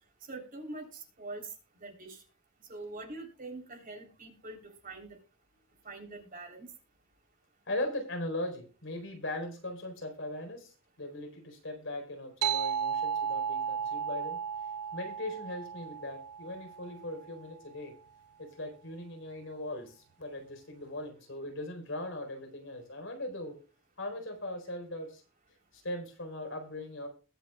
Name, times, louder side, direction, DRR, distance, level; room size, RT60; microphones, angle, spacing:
voice 1, 0.3-1.5 1.8-2.2 2.7-4.6 4.8-5.2 5.8-6.7, right 2 dB, 35° right, 3 dB, 3.7 m, -44 dB
voice 2, 7.7-14.4 14.9-18.0 18.4-23.6 24.0-25.2 25.7-27.1, left 1 dB, 60° left, 4 dB, 4.3 m, -39 dB
sound 1, 12.4-17.4, right 7 dB, 80° right, 0.4 m, -34 dB
21.5 x 7.6 x 2.4 m, 0.34 s
head